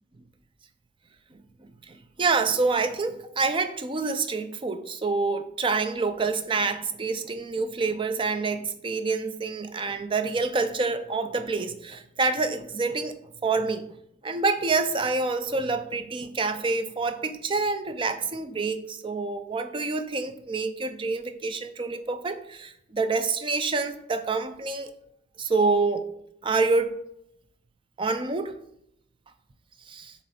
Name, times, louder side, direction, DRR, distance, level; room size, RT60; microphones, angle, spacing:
voice 1, 1.9-13.1 13.4-13.8 14.2-24.9 25.4-26.1 26.4-26.9 28.0-28.6 29.9-30.1, right 3 dB, 25° right, 9 dB, 0.5 m, -27 dB
7.5 x 3.1 x 4.3 m, 0.74 s
head